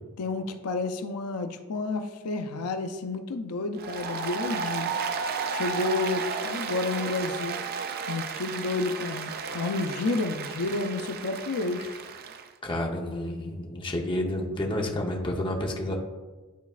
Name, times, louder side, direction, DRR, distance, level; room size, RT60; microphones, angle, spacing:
voice 1, 0.2-4.9 5.5-7.6 8.1-12.0, left 3 dB, 90° left, 7 dB, 0.5 m, -30 dB
Applause, 3.8-12.5, right 5 dB, 45° right, 0.4 m, -33 dB
voice 2, 12.6-16.0, left 1 dB, 20° left, 1 dB, 0.7 m, -30 dB
10.0 x 4.0 x 2.4 m, 1.3 s
head